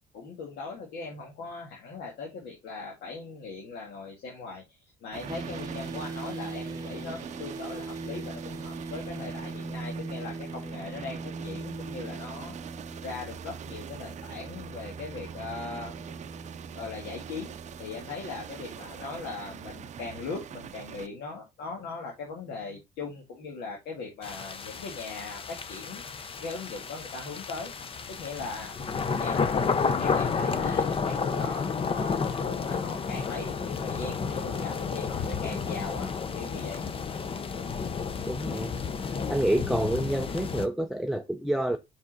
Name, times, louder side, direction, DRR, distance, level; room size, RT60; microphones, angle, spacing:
voice 1, 0.1-4.6 5.0-12.6 13.0-16.0 16.7-17.5 17.8-26.0 26.3-27.7 28.1-28.8 29.2-36.8, left 4 dB, 80° left, 1.8 m, -39 dB
sound 1, 5.1-21.1, right 9 dB, 45° right, 0.6 m, -44 dB
sound 2, 5.3-20.3, right 3 dB, 20° right, 1.2 m, -40 dB
sound 3, 24.2-40.7, left 5 dB, 35° left, 0.7 m, -31 dB
voice 2, 38.2-38.7 39.3-41.8, right 1 dB, ahead, 0.5 m, -28 dB
5.4 x 5.1 x 3.9 m
cardioid pair, 110°, 17 cm